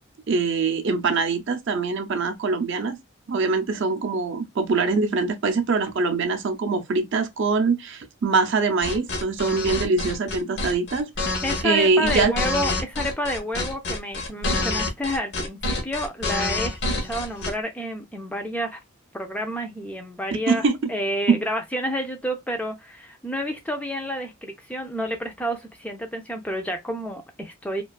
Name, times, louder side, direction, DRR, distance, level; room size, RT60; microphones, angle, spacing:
voice 1, 0.3-3.0 3.3-11.3 11.6-12.3 20.5-20.9 21.3-21.4, right 4 dB, 55° right, 0.5 m, -23 dB
sound 1, 8.8-17.5, left 2 dB, 55° left, 0.6 m, -27 dB
voice 2, 11.4-18.8 19.1-20.6 20.9-27.8, equal, 5° left, 0.3 m, -29 dB
2.4 x 2.3 x 2.3 m
head